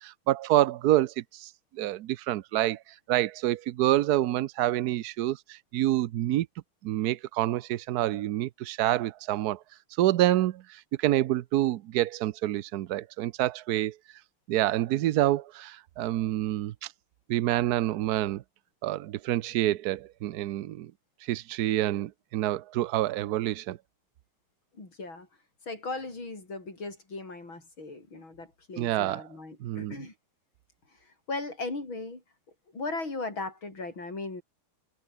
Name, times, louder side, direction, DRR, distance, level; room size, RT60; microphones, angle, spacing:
voice 1, 0.0-6.5 6.8-9.6 10.0-14.0 14.5-16.9 17.3-18.4 18.8-20.9 21.2-23.8 28.8-29.3 29.6-29.9, right 14 dB, 85° right, 0.8 m, -27 dB
voice 2, 24.7-25.3 25.7-30.1 31.0-32.2 32.7-34.4, left 3 dB, 65° left, 7.0 m, -37 dB
omnidirectional pair, 2.4 m